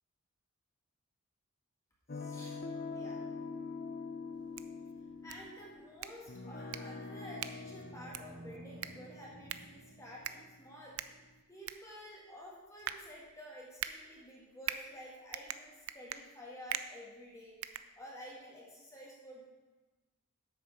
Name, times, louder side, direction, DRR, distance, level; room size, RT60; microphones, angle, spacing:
sound 1, 2.1-11.3, left 4 dB, 45° left, 0.7 m, -45 dB
voice 1, 2.1-2.6 2.9-3.2 5.2-11.1 11.5-17.6 18.0-19.5, equal, 15° left, -4 dB, 1.8 m, -51 dB
sound 2, 4.3-18.5, right 10 dB, 80° right, 0.5 m, -45 dB
sound 3, 7.6-10.6, right 2 dB, 25° right, 0.3 m, -54 dB
8.7 x 6.6 x 6.6 m, 1.2 s
head